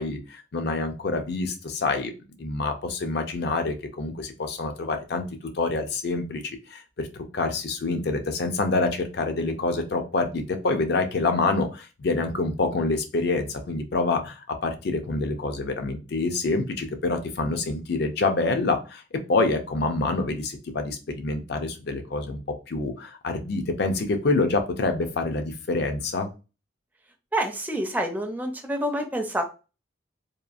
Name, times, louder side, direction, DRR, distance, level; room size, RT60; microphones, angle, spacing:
voice 1, 0.0-2.1 2.4-5.2 5.5-7.1 7.3-22.4 22.7-26.3, left 3 dB, 55° left, 7 dB, 0.5 m, -26 dB
voice 2, 27.3-29.4, right 1 dB, 10° right, 3 dB, 0.4 m, -27 dB
2.8 x 2.3 x 2.4 m, 0.31 s
head